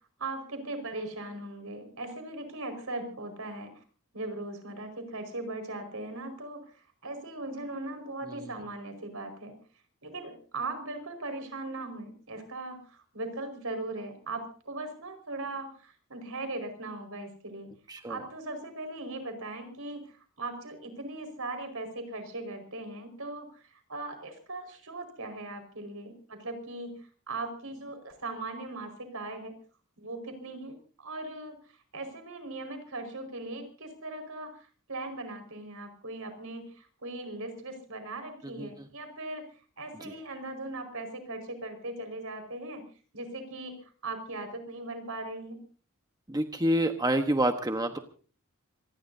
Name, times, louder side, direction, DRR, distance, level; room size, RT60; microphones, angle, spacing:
voice 1, 0.2-3.7 4.1-9.5 10.0-17.7 18.1-27.0 27.3-29.6 30.0-31.6 31.9-39.4 39.8-42.8 43.1-43.8 44.0-45.6, right 2 dB, 70° right, 7 dB, 5.1 m, -39 dB
voice 2, 17.9-18.2 38.4-38.9 40.0-40.1 46.3-48.0, right 1 dB, 20° right, 6 dB, 1.2 m, -28 dB
26.5 x 20.0 x 2.7 m, 0.40 s
head